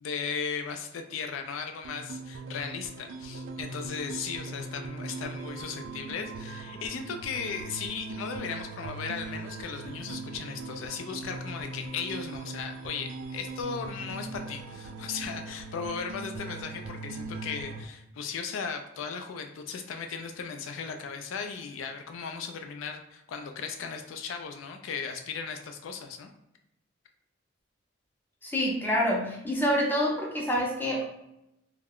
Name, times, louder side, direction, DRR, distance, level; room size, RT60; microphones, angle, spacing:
voice 1, 0.0-26.3, left 6 dB, 80° left, 5 dB, 0.3 m, -36 dB
sound 1, 1.8-17.8, right 3 dB, 70° right, 0.3 m, -40 dB
voice 2, 28.4-31.0, equal, 10° left, -3 dB, 0.5 m, -27 dB
2.4 x 2.1 x 3.5 m, 0.86 s
head